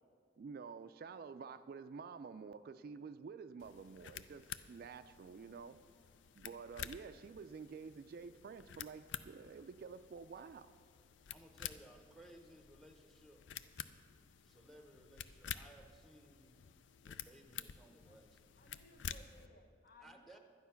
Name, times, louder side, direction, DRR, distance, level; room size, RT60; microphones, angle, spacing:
voice 1, 0.4-5.8 6.4-10.7, right 5 dB, 55° right, 11 dB, 0.3 m, -50 dB
sound 1, 3.6-19.5, left 9 dB, 90° left, 0.4 m, -51 dB
voice 2, 11.3-13.5 14.4-16.6 17.0-18.6 20.0-20.4, right 1 dB, ahead, 5 dB, 0.8 m, -60 dB
voice 3, 17.8-18.3 18.5-20.4, left 2 dB, 55° left, 6 dB, 0.9 m, -64 dB
12.0 x 9.5 x 5.7 m, 2.3 s
head